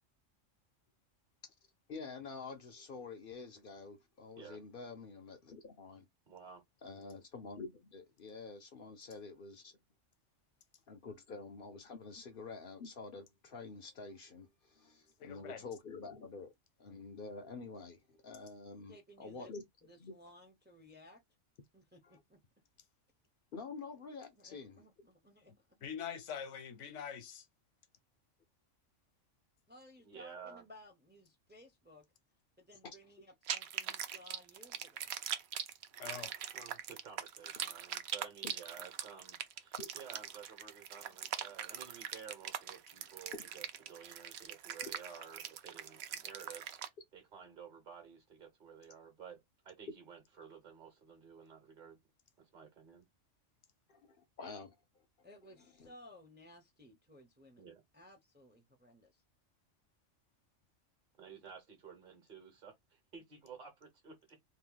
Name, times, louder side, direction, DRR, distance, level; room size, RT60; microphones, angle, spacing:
voice 1, 1.9-6.1 6.8-9.7 10.9-16.5 16.8-19.6 20.0-20.1 22.0-22.2 23.5-24.8 38.4-38.5 39.8-39.9 43.3-43.4 53.9-54.8 55.8-55.9, left 4 dB, 55° left, 0.7 m, -48 dB
voice 2, 6.3-6.6 30.0-30.6 36.5-52.0 52.4-53.1 57.6-57.8 61.2-64.4, right 6 dB, 45° right, 1.2 m, -53 dB
voice 3, 15.2-15.6 25.8-27.5 36.0-36.3, left 7 dB, 75° left, 1.1 m, -44 dB
voice 4, 18.9-19.5 19.8-21.2 21.7-22.4 24.4-25.7 29.7-32.1 32.6-35.1 55.2-59.2, left 1 dB, 10° right, 0.6 m, -59 dB
sound 1, 33.5-46.9, right 9 dB, 65° right, 0.8 m, -42 dB
2.8 x 2.6 x 3.8 m
omnidirectional pair, 1.3 m